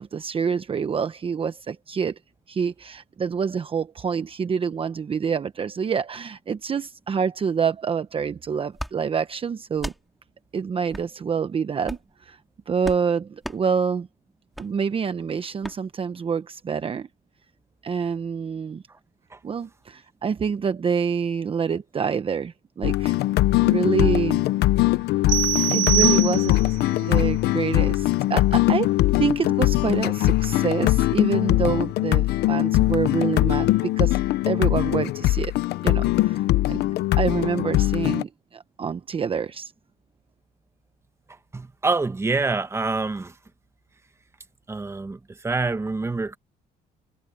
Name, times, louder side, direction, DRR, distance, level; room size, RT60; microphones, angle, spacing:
voice 1, 0.0-2.1 2.5-9.9 10.5-12.4 12.7-14.1 14.6-17.1 17.8-18.8 19.4-23.2 23.6-24.4 25.7-26.6 27.0-34.2 34.5-35.5 35.8-36.4 36.7-36.8 37.2-39.7, right 6 dB, 35° right, 1.0 m, -27 dB
sound 1, 8.7-8.9 9.7-10.0 10.9-11.1 11.8-12.1 12.8-13.0 13.4-13.6 14.5-14.7 15.6-15.8, equal, ahead, 3.6 m, -34 dB
sound 2, 22.8-38.2, left 17 dB, 75° left, 0.8 m, -21 dB
sound 3, 25.3-26.8, right 14 dB, 55° right, 0.4 m, -24 dB
voice 2, 41.5-43.3 44.7-46.4, right 3 dB, 15° right, 1.3 m, -26 dB
cardioid pair, 110°, 17 cm